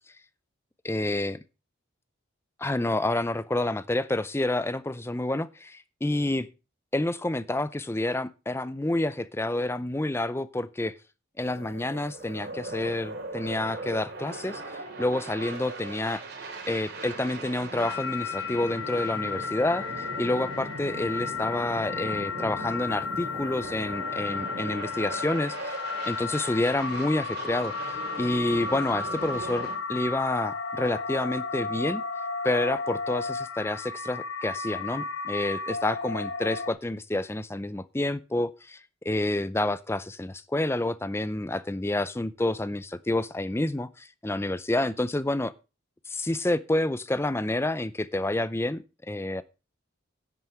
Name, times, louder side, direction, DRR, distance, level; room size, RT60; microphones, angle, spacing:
voice 1, 0.8-1.4 2.6-6.5 6.9-11.0 11.4-16.2 16.7-25.8 26.1-27.7 28.2-32.0 32.4-45.5 46.1-49.4, left 1 dB, 10° left, 0.5 m, -29 dB
sound 1, 11.4-29.8, right 2 dB, 50° right, 3.1 m, -39 dB
sound 2, 17.8-36.7, left 5 dB, 75° left, 1.0 m, -34 dB
10.5 x 7.7 x 5.8 m
head